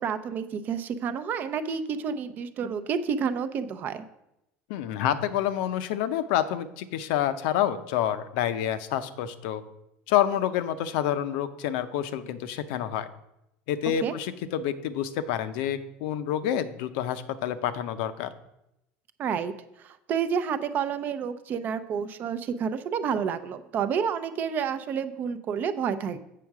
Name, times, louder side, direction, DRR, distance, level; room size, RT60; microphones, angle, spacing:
voice 1, 0.0-4.0 14.0-14.1 19.2-19.5 19.8-26.2, right 7 dB, 40° right, 11 dB, 0.6 m, -29 dB
voice 2, 4.7-9.6 10.1-13.1 13.7-18.3, left 10 dB, 80° left, 11 dB, 0.6 m, -28 dB
7.6 x 6.3 x 4.7 m, 0.84 s
cardioid pair, 145°, 5 cm